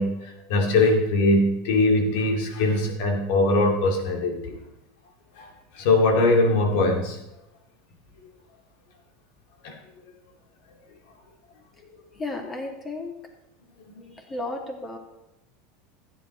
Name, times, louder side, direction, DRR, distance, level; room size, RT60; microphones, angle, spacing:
voice 1, 0.0-4.6 5.4-5.5 5.7-7.2 9.6-9.7 14.0-14.1, left 2 dB, 60° left, 2 dB, 2.3 m, -21 dB
voice 2, 12.1-13.1 14.1-15.0, left 2 dB, 20° left, 2 dB, 2.5 m, -33 dB
15.0 x 8.5 x 3.2 m, 0.88 s
figure-of-eight pair, 80°, 0 cm